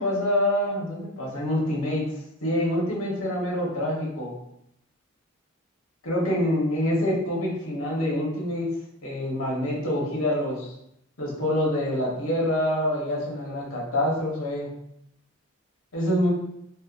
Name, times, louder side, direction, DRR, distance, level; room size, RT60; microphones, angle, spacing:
voice 1, 0.0-2.1 2.4-4.3 6.0-8.7 9.0-10.7 11.2-14.7 15.9-16.3, left 1 dB, 80° left, -3 dB, 0.8 m, -26 dB
2.7 x 2.1 x 2.3 m, 0.78 s
head